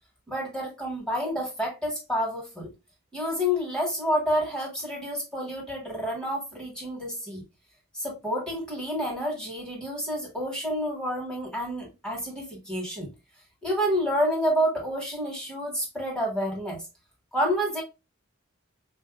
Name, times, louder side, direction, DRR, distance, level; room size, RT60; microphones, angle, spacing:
voice 1, 0.3-2.7 3.1-7.4 7.9-13.1 13.6-16.8 17.3-17.8, equal, 5° left, 1.6 m, -29 dB
5.3 x 2.7 x 2.4 m
head